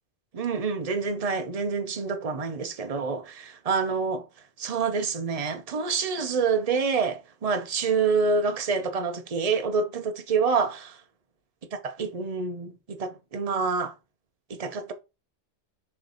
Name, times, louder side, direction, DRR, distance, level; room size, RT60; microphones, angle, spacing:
voice 1, 0.3-4.2 4.6-10.9 11.7-13.9 14.5-14.9, right 5 dB, 35° right, 0.8 m, -27 dB
7.3 x 3.3 x 4.0 m
omnidirectional pair, 1.3 m